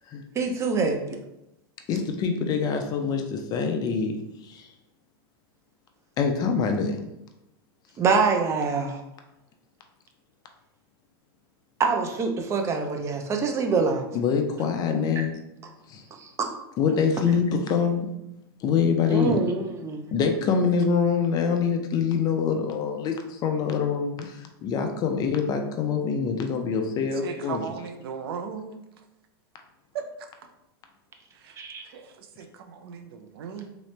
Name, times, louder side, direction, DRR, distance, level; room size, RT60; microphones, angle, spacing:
voice 1, 0.3-1.2 8.0-9.0 11.8-14.0 16.2-16.5 19.1-20.0 31.6-31.8, right 4 dB, 20° right, 4 dB, 0.6 m, -25 dB
voice 2, 1.9-4.1 4.5-4.7 6.2-7.0 14.1-15.4 15.9-16.0 16.8-18.1 18.6-19.4 20.1-27.7, left 6 dB, 30° left, 4 dB, 0.5 m, -25 dB
voice 3, 27.0-28.8 29.9-30.0 31.4-31.5 31.9-33.7, right 6 dB, 75° right, 6 dB, 0.6 m, -37 dB
3.7 x 3.1 x 3.2 m, 0.89 s
supercardioid pair, 135°, 13 cm